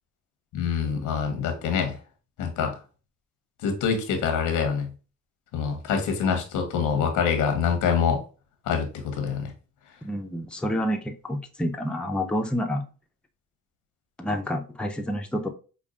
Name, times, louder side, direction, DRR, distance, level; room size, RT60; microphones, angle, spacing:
voice 1, 0.5-2.0 2.4-2.7 3.6-4.9 5.5-8.2 8.7-9.5, left 6 dB, 90° left, 1.1 m, -25 dB
voice 2, 10.0-12.9 14.2-15.5, equal, 5° left, 0.6 m, -28 dB
5.2 x 2.4 x 2.4 m
cardioid pair, 90°, 30 cm